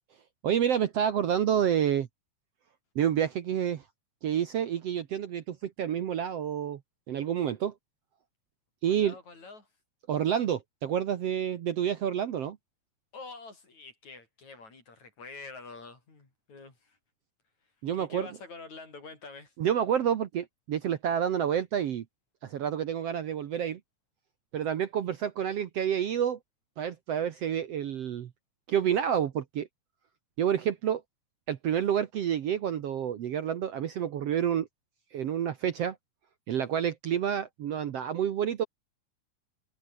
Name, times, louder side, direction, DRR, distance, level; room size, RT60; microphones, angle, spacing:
voice 1, 0.4-2.1 3.0-3.8 4.2-6.8 7.1-7.7 8.8-9.1 10.1-12.6 17.8-18.3 19.6-22.0 22.4-23.8 24.5-26.4 26.8-28.3 28.7-29.7 30.4-31.0 31.5-34.7 35.1-36.0 36.5-38.6, right 9 dB, 60° right, 1.9 m, -29 dB
voice 2, 8.9-9.7 13.1-17.0 17.9-19.5, left 3 dB, 55° left, 7.6 m, -46 dB
omnidirectional pair, 3.8 m